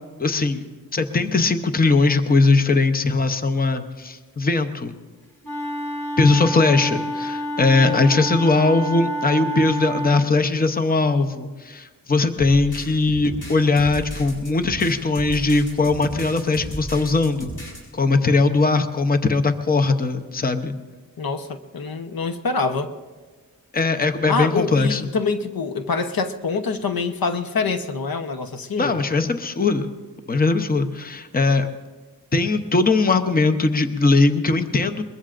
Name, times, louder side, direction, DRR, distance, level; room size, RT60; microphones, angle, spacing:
voice 1, 0.2-0.6 0.9-4.9 6.2-17.5 17.9-20.8 23.7-25.0 28.8-29.9 30.3-31.7 32.3-35.0, left 3 dB, 25° left, 8 dB, 0.8 m, -20 dB
Wind instrument woodwind instrument, 5.4-10.3, right 1 dB, 5° left, 2.7 m, -28 dB
voice 2, 7.8-8.3 21.2-22.9 24.3-29.0, left 4 dB, 80° left, 7 dB, 0.9 m, -25 dB
sound 1, 12.4-17.8, right 1 dB, 60° left, 6.3 m, -34 dB
22.5 x 21.5 x 2.5 m, 1.4 s
wide cardioid pair, 115°, 35 cm